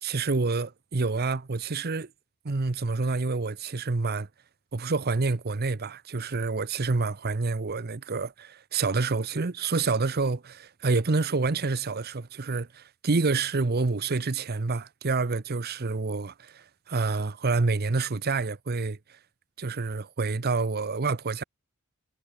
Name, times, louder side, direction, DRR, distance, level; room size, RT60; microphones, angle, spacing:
voice 1, 0.0-2.1 2.4-4.3 4.7-19.2 19.6-21.4, right 3 dB, 45° right, 0.8 m, -28 dB
head